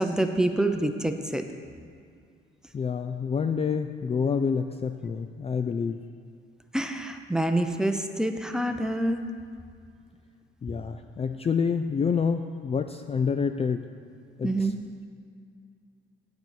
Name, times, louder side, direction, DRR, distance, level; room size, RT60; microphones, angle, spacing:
voice 1, 0.0-1.4 6.7-9.2 14.4-14.8, right 1 dB, 5° right, 6 dB, 0.7 m, -26 dB
voice 2, 2.7-6.0 10.6-13.9 14.4-14.7, left 6 dB, 30° left, 7 dB, 0.4 m, -28 dB
8.8 x 5.5 x 7.5 m, 2.3 s
cardioid pair, 90°, 20 cm